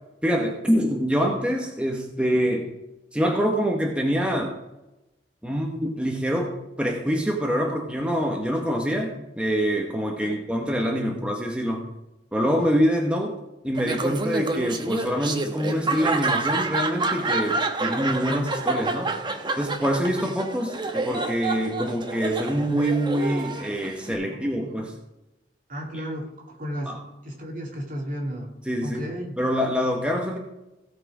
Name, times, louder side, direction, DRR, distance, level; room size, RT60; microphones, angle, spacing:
voice 1, 0.2-2.7 3.1-4.6 5.4-11.9 12.3-13.4 13.6-19.1 19.6-24.9 25.9-26.0 26.9-27.0 28.7-29.1 29.4-30.4, equal, 5° right, 1 dB, 1.1 m, -25 dB
Laughter, 13.8-24.1, right 3 dB, 25° right, 1.0 m, -28 dB
voice 2, 24.3-24.9 25.7-28.5 28.8-29.3, equal, 50° right, -1 dB, 2.7 m, -34 dB
16.5 x 5.8 x 4.9 m, 0.97 s
head